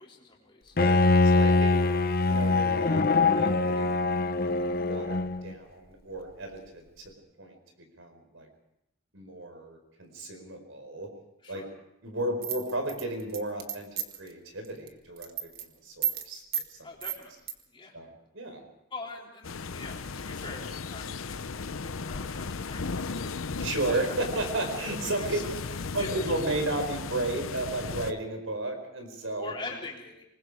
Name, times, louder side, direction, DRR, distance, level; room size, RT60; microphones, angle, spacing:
voice 1, 0.0-0.8 11.4-11.7 16.8-17.9 18.9-23.3 23.8-24.0 25.2-26.3 29.4-30.2, left 3 dB, 25° left, -1 dB, 3.7 m, -44 dB
voice 2, 0.7-1.8 2.3-4.1 4.4-7.0 7.4-7.6 8.0-8.5 9.1-11.1 11.5-11.6 12.0-13.9 14.2-16.4 16.7-16.8 17.9-18.1 18.3-18.7 23.6-25.4 25.9-29.5, right 2 dB, 70° right, 5 dB, 4.8 m, -33 dB
Bowed string instrument, 0.8-5.5, left 3 dB, 45° left, 0.8 m, -23 dB
sound 1, 12.4-14.3 14.6-14.9 15.2-15.6 16.0-16.3 16.5-16.7 17.0-17.5, right 9 dB, 45° right, 1.7 m, -32 dB
sound 2, 19.4-28.1, left 4 dB, 75° left, 0.7 m, -36 dB
26.5 x 20.5 x 5.0 m, 0.83 s
head